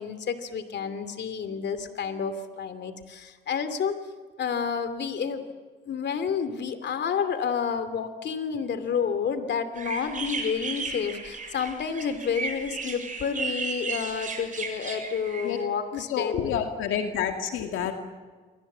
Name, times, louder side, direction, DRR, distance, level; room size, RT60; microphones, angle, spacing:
voice 1, 0.0-4.0 4.4-5.5 5.8-16.6, left 6 dB, 60° left, 10 dB, 2.8 m, -30 dB
sound 1, 9.7-15.6, right 4 dB, 40° right, 7.3 m, -35 dB
voice 2, 15.9-17.9, left 8 dB, 90° left, 4 dB, 2.2 m, -28 dB
28.5 x 24.0 x 7.5 m, 1.5 s
cardioid pair, 90°, 20 cm